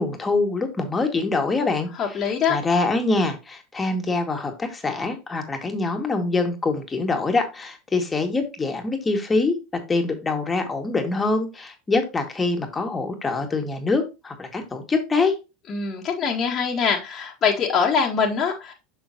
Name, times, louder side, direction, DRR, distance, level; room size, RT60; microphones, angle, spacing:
voice 1, 0.0-9.6 9.9-15.3, left 3 dB, 20° left, 2.0 m, -24 dB
voice 2, 2.0-2.6 15.7-18.7, left 6 dB, 35° left, 1.7 m, -23 dB
7.3 x 6.3 x 2.9 m
hypercardioid pair, 85°, 0 cm